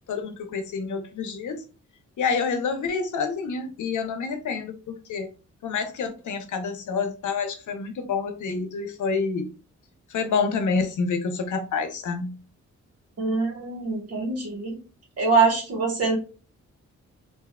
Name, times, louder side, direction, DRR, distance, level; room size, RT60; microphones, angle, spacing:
voice 1, 0.1-1.6 2.2-5.3 5.6-9.5 10.1-12.3, left 5 dB, 85° left, 0.7 m, -28 dB
voice 2, 13.2-14.7 15.2-16.2, right 4 dB, 55° right, 1.4 m, -24 dB
3.6 x 2.6 x 2.2 m
wide cardioid pair, 110°, 29 cm